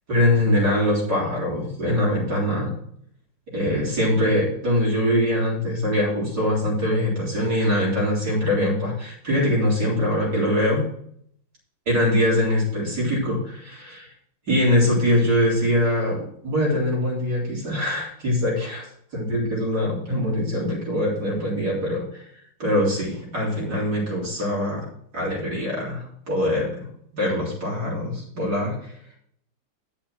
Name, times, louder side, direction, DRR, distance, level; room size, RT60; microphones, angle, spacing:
voice 1, 0.1-2.7 3.5-10.8 11.9-14.1 14.5-18.8 19.1-22.2 22.6-24.9 25.1-26.9 27.1-28.9, left 1 dB, 45° right, -4 dB, 4.4 m, -23 dB
8.9 x 6.5 x 6.0 m, 0.66 s
omnidirectional pair, 2.4 m